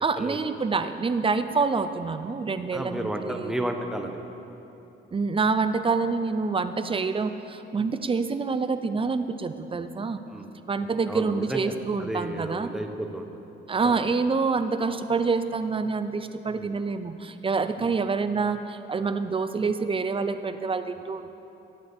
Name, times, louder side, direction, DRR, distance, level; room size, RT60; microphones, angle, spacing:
voice 1, 0.0-3.5 5.1-10.2 10.7-12.7 13.7-21.3, right 4 dB, 25° right, 10 dB, 0.5 m, -27 dB
voice 2, 2.7-4.2 10.3-10.5 11.1-11.7 12.0-13.3 13.8-14.0 16.5-16.7 17.8-17.9, right 1 dB, ahead, 4 dB, 1.0 m, -32 dB
19.0 x 8.2 x 3.5 m, 3.0 s
cardioid pair, 90°, 20 cm